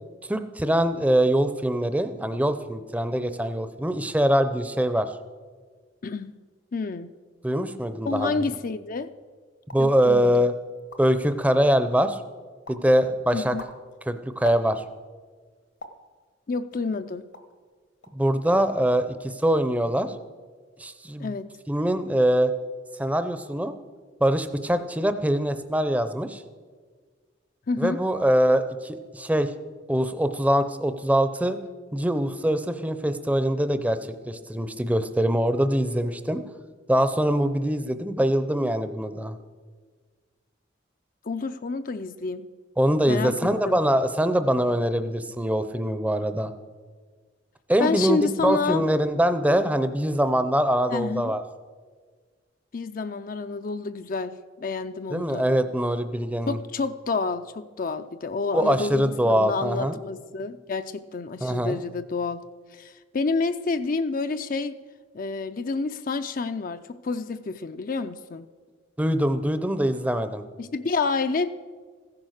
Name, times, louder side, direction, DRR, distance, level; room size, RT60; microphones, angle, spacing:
voice 1, 0.2-5.1 7.4-8.4 9.7-10.5 11.0-12.2 12.7-13.6 14.1-14.8 18.1-20.1 20.8-21.3 21.7-22.5 23.0-23.8 24.2-26.4 27.8-29.5 29.9-31.6 31.9-34.0 34.3-36.4 36.9-39.4 42.8-46.5 47.7-51.4 55.1-56.6 58.5-60.0 61.4-61.8 69.0-70.4, equal, 10° right, 10 dB, 0.6 m, -23 dB
voice 2, 6.7-7.1 8.0-9.1 9.8-10.3 13.3-13.6 16.5-17.2 21.2-21.5 27.7-28.0 41.2-42.4 43.1-43.8 47.8-48.8 50.9-51.3 52.7-55.4 56.5-62.4 62.7-64.8 65.1-68.5 70.6-71.5, left 4 dB, 45° left, 9 dB, 0.5 m, -29 dB
sound 1, 9.6-10.0 10.5-10.6 10.8-11.3 11.8-12.2 12.7-12.9 13.4-15.0 15.8-16.1 16.7-17.6 18.0-18.2 18.6-19.1 19.3-19.8, left 1 dB, 75° left, 1.3 m, -43 dB
15.0 x 10.5 x 6.4 m, 1.5 s
head